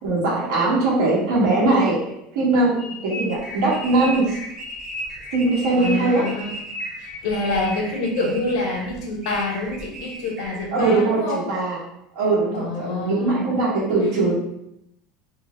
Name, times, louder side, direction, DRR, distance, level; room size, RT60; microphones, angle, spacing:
voice 1, 0.0-2.8 3.0-4.4 5.3-6.3 10.7-11.8 12.1-14.3, right 2 dB, 80° right, -5 dB, 1.2 m, -21 dB
sound 1, 2.8-8.1, left 2 dB, 40° left, 0.4 m, -35 dB
sound 2, 3.3-10.7, right 3 dB, 25° right, 0.5 m, -39 dB
voice 2, 5.8-6.5 7.0-11.4 12.5-13.5, left 2 dB, 90° left, 0 dB, 0.7 m, -26 dB
3.4 x 2.0 x 3.0 m, 0.81 s
supercardioid pair, 145°, 3 cm